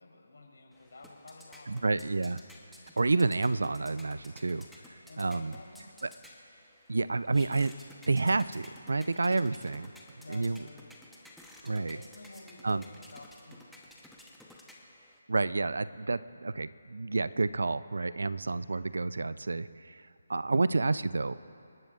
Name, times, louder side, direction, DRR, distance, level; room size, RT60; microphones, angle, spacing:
voice 1, 0.0-1.9 5.1-5.9 10.2-10.9 11.8-13.9 20.3-20.4, left 2 dB, 65° left, -1 dB, 3.7 m, -51 dB
sound 1, 0.7-15.2, left 1 dB, ahead, 1.0 m, -54 dB
voice 2, 1.7-2.4 3.0-5.5 6.0-6.1 6.9-7.7 8.1-9.9 10.3-10.6 11.6-12.0 12.6-12.8 15.3-20.0 20.3-21.4, right 3 dB, 70° right, 16 dB, 0.4 m, -29 dB
27.0 x 12.0 x 2.5 m, 2.6 s
figure-of-eight pair, 155°, 0 cm